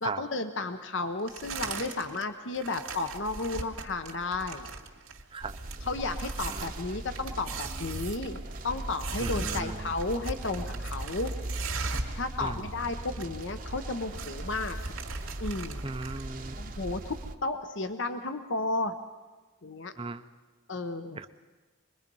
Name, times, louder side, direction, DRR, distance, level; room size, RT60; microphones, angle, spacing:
voice 1, 0.0-4.7 5.8-8.4 8.6-11.3 12.2-14.8 15.4-15.9 16.6-19.0 19.6-19.9 20.7-21.3, left 3 dB, 65° left, 8 dB, 0.9 m, -33 dB
sound 1, 1.3-2.2 2.5-12.2 12.5-12.6 12.8-13.5 13.8-16.3, right 4 dB, 85° right, 2.2 m, -39 dB
sound 2, 5.4-17.3, right 1 dB, 40° right, 0.9 m, -39 dB
voice 2, 9.2-9.9 12.4-12.7 15.8-16.5 20.0-20.2 21.2-21.3, right 3 dB, 25° right, 10 dB, 0.6 m, -37 dB
25.0 x 21.5 x 5.5 m, 1.3 s
head